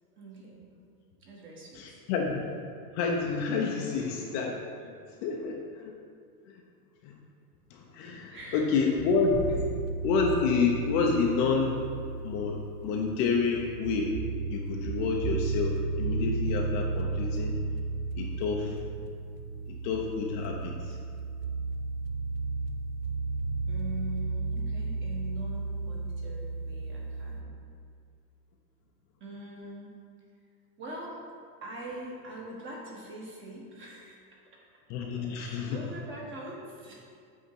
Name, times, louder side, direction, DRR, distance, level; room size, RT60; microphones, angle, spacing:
voice 1, 0.1-0.6 1.2-2.0 3.7-4.1 8.3-8.8 9.5-10.1 23.7-27.5 29.2-30.0 30.8-31.2 31.6-34.2 35.4-37.0, right 1 dB, 25° right, -2 dB, 1.2 m, -43 dB
voice 2, 1.7-2.5 2.9-5.9 6.5-6.6 7.0-7.2 7.7-9.5 10.0-11.9 12.2-14.1 14.5-17.6 18.1-18.8 19.7-21.0 34.9-35.8, left 4 dB, 40° left, 0 dB, 0.6 m, -29 dB
sound 1, 9.0-27.4, right 3 dB, 80° right, 0.6 m, -34 dB
sound 2, 9.3-11.9, left 2 dB, 55° right, 1.1 m, -40 dB
8.1 x 3.6 x 4.5 m, 2.2 s
supercardioid pair, 150°, 47 cm